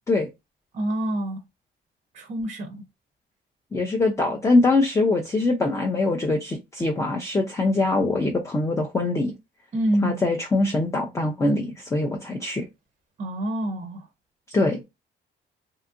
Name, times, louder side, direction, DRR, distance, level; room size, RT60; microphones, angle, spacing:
voice 1, 0.7-1.4 2.1-2.8 9.7-10.1 13.2-14.1, right 1 dB, 40° right, 0.5 m, -26 dB
voice 2, 3.7-9.3 10.0-12.7 14.5-14.8, left 2 dB, 15° left, 0.5 m, -23 dB
2.7 x 2.4 x 2.4 m
cardioid pair, 90°, 20 cm